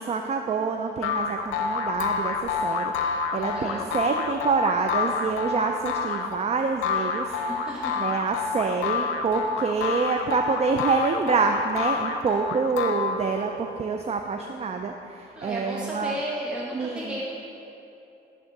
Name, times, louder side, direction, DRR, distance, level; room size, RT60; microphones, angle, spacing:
voice 1, 0.0-7.4 7.7-16.2 16.7-17.2, right 4 dB, 35° right, 4 dB, 0.4 m, -27 dB
sound 1, 1.0-13.6, left 5 dB, 90° left, 0.6 m, -28 dB
voice 2, 3.3-3.9 7.2-8.0 15.3-17.2, equal, 5° right, -6 dB, 1.1 m, -34 dB
10.5 x 3.6 x 5.8 m, 2.8 s
cardioid pair, 90°, 20 cm